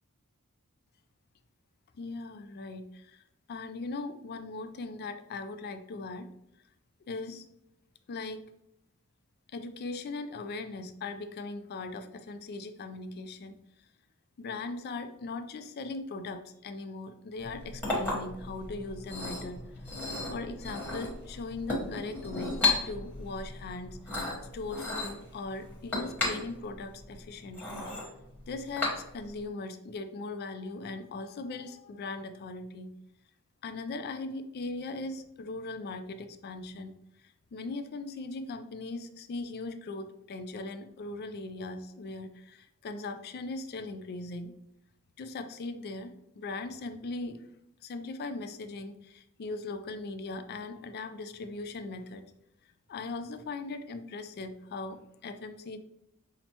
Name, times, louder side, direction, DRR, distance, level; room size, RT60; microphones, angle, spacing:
voice 1, 2.0-3.2 3.5-6.3 7.1-7.5 8.1-8.4 9.5-13.6 14.4-19.7 20.3-27.9 28.5-32.9 33.6-36.9 37.5-44.5 45.2-47.4 47.8-52.2 52.9-55.8, left 3 dB, 45° left, 9 dB, 0.3 m, -39 dB
Chink clink, 17.4-29.4, left 2 dB, 10° left, 1.2 m, -35 dB
5.7 x 2.1 x 2.8 m, 0.81 s
head